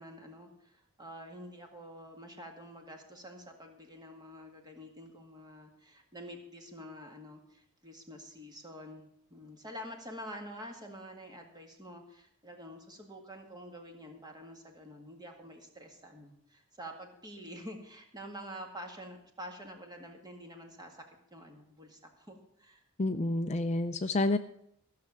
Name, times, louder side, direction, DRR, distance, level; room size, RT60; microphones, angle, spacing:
voice 1, 0.0-21.0 21.3-22.8, equal, 20° right, 3 dB, 2.0 m, -47 dB
voice 2, 23.0-24.4, left 2 dB, 30° left, 9 dB, 0.5 m, -29 dB
15.0 x 6.7 x 7.2 m, 0.72 s
head